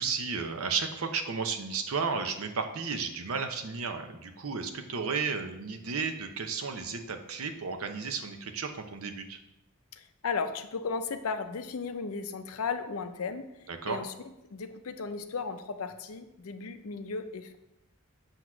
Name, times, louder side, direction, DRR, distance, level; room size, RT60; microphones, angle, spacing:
voice 1, 0.0-9.4 13.7-14.0, right 5 dB, 80° right, 6 dB, 0.7 m, -33 dB
voice 2, 9.9-14.1 14.5-17.6, left 5 dB, 80° left, 9 dB, 0.6 m, -35 dB
7.8 x 3.0 x 6.0 m, 0.90 s
head